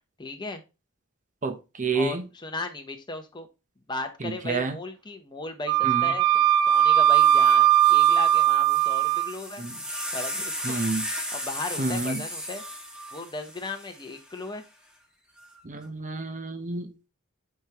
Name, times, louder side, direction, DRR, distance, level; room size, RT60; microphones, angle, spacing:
voice 1, 0.2-0.6 1.9-3.5 3.9-9.6 10.1-10.8 11.3-12.6 13.1-14.6, left 3 dB, 20° left, 0.9 m, -36 dB
voice 2, 1.4-2.3 4.2-4.8 5.8-6.1 9.6-9.8 10.6-11.0 11.8-12.2 15.6-16.9, right 3 dB, 35° right, 0.9 m, -29 dB
Wind instrument woodwind instrument, 5.7-9.3, right 11 dB, 75° right, 0.4 m, -19 dB
sound 1, 6.7-6.8 7.1-14.5 15.4-15.8, equal, 5° right, 1.2 m, -36 dB
9.0 x 3.6 x 3.0 m
head